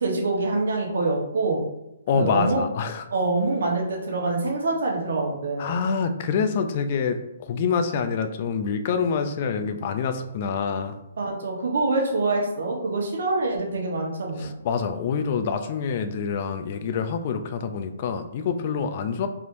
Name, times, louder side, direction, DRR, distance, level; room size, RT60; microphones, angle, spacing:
voice 1, 0.0-1.6 2.1-2.6 3.1-5.8 11.2-14.5, right 3 dB, 70° right, -1 dB, 1.0 m, -25 dB
voice 2, 2.1-3.0 5.6-11.0 14.4-19.3, left 6 dB, 40° left, 8 dB, 0.3 m, -26 dB
3.4 x 2.8 x 2.5 m, 0.91 s
hypercardioid pair, 155°, 0 cm